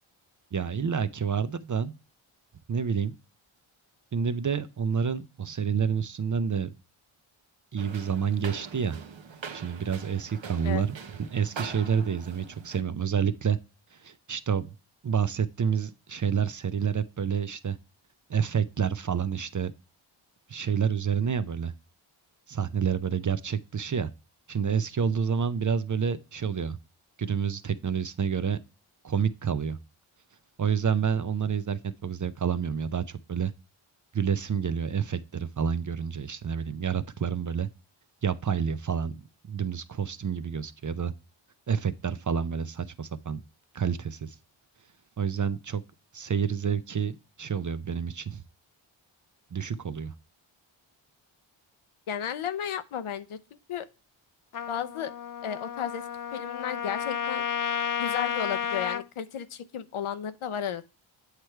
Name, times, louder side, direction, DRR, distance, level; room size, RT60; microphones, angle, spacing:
voice 1, 0.5-1.9 2.7-3.1 4.1-6.7 7.7-9.0 9.5-11.0 11.3-13.6 14.0-14.7 15.0-17.8 18.3-19.7 20.5-21.7 22.5-24.1 24.5-26.8 27.2-28.6 29.0-29.8 30.6-33.5 34.1-37.7 38.2-39.1 39.5-41.1 41.7-43.4 43.7-44.4 45.2-45.8 46.1-48.4 49.5-50.1, right 7 dB, 40° right, 0.6 m, -28 dB
sound 1, 7.8-12.8, right 5 dB, 60° right, 1.0 m, -43 dB
voice 2, 52.1-53.9 54.7-55.1 55.4-56.0 56.3-57.4 58.0-60.8, left 9 dB, 75° left, 0.8 m, -33 dB
Trumpet, 54.5-59.1, left 8 dB, 45° left, 0.5 m, -32 dB
8.2 x 3.2 x 4.5 m
cardioid pair, 55°, 50 cm